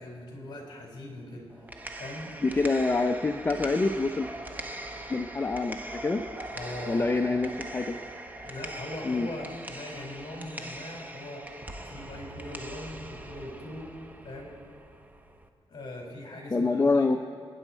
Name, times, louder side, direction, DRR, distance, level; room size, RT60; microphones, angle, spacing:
voice 1, 0.0-2.3 6.5-7.4 8.4-13.9 14.2-14.5 15.7-17.2, left 1 dB, 40° left, -1 dB, 4.5 m, -41 dB
sound 1, 1.5-15.5, right 1 dB, 15° right, 0.9 m, -41 dB
voice 2, 2.4-4.3 5.1-6.2 6.9-8.0 9.0-9.3 16.5-17.2, left 3 dB, 20° left, 5 dB, 0.5 m, -26 dB
27.0 x 9.9 x 4.5 m, 2.3 s
wide cardioid pair, 130°, 10 cm